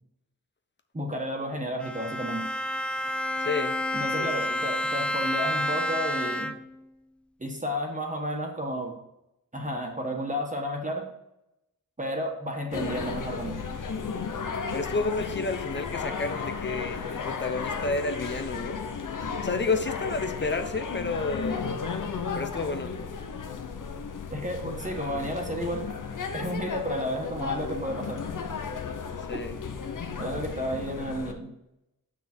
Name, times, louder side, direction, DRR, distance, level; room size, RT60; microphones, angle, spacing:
voice 1, 0.9-2.5 3.1-3.2 3.9-6.5 7.4-9.0 9.5-11.0 12.0-13.6 24.3-25.9 26.3-28.2 29.3-29.4 30.2-31.5, equal, 20° right, 0 dB, 1.5 m, -32 dB
Bowed string instrument, 1.8-6.8, equal, 5° left, 0.4 m, -29 dB
voice 2, 3.4-3.8 4.2-4.6 14.7-18.8 19.4-21.7 22.3-23.0 29.3-29.5, left 3 dB, 35° left, 8 dB, 0.9 m, -31 dB
sound 1, 12.7-31.3, left 5 dB, 65° left, 1.0 m, -34 dB
7.5 x 6.1 x 4.4 m, 0.88 s
wide cardioid pair, 115°, 33 cm